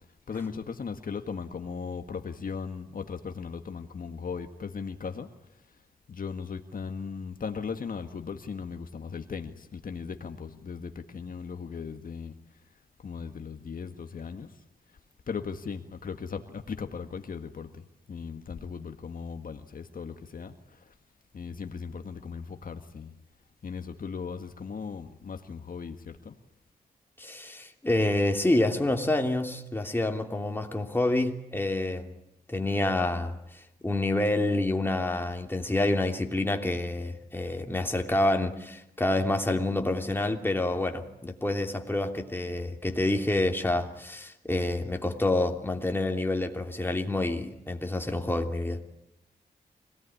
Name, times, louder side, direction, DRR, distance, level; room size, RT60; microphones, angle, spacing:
voice 1, 0.3-5.8 6.1-12.6 13.0-14.6 14.9-15.0 15.3-20.9 21.3-23.1 23.6-26.4, left 5 dB, 60° left, 1.8 m, -38 dB
voice 2, 27.2-32.1 32.5-33.4 33.8-48.8, left 2 dB, 15° left, 3.0 m, -28 dB
26.0 x 18.5 x 10.0 m
cardioid pair, 70°, 17 cm